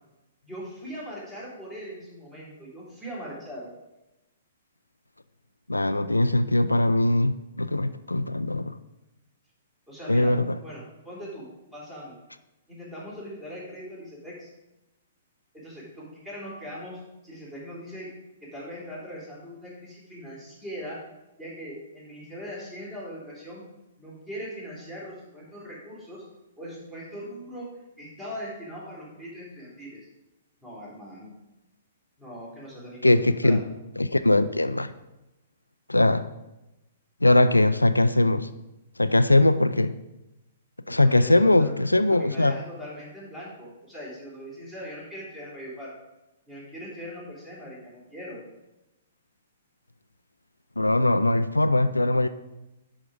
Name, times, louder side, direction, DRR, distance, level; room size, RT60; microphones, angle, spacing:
voice 1, 0.4-3.7 9.9-10.4 10.6-12.2 12.7-14.5 15.5-18.1 18.4-21.0 21.4-23.6 24.0-26.2 26.6-30.1 30.6-31.3 32.2-33.6 41.0-41.7 42.1-45.9 46.5-48.4, equal, 10° right, -6 dB, 3.7 m, -40 dB
voice 2, 5.7-8.8 10.1-10.6 33.0-33.6 34.0-34.9 35.9-36.3 37.2-38.5 39.0-40.0 40.9-42.5 50.8-52.3, left 2 dB, 85° left, 12 dB, 0.4 m, -21 dB
10.5 x 4.9 x 5.1 m, 0.97 s
figure-of-eight pair, 115°, 0 cm